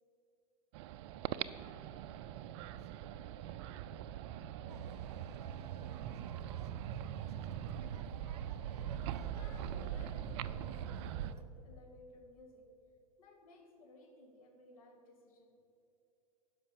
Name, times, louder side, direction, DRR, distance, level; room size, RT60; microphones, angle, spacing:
sound 1, 0.7-11.3, right 11 dB, 50° right, 0.4 m, -42 dB
voice 1, 2.5-3.1 3.4-5.4 6.0-8.0, right 4 dB, 35° right, 7 dB, 1.5 m, -64 dB
sound 2, 4.7-11.4, right 4 dB, 75° right, 0.7 m, -49 dB
voice 2, 9.4-12.7 13.2-15.6, left 1 dB, 60° left, 2 dB, 1.9 m, -58 dB
10.5 x 5.8 x 6.9 m, 2.8 s
figure-of-eight pair, 95°, 20 cm